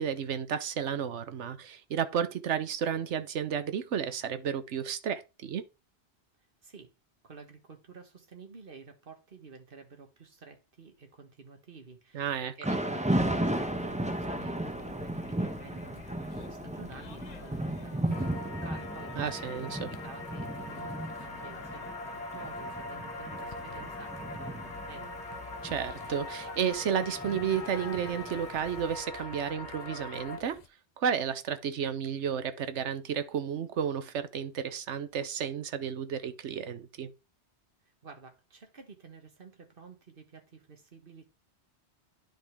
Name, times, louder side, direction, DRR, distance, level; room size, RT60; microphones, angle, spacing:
voice 1, 0.0-5.6 12.1-12.5 19.1-19.9 25.6-30.6 31.0-37.1, right 8 dB, 85° right, 1.1 m, -32 dB
voice 2, 7.2-12.3 12.6-25.4 37.8-41.3, right 4 dB, 50° right, 1.7 m, -51 dB
Thunder / Rain, 12.6-28.7, right 1 dB, 5° right, 0.8 m, -35 dB
sound 1, 13.1-30.7, left 7 dB, 45° left, 0.6 m, -51 dB
sound 2, 18.1-30.4, left 2 dB, 75° left, 2.1 m, -42 dB
10.0 x 5.2 x 3.5 m
omnidirectional pair, 1.2 m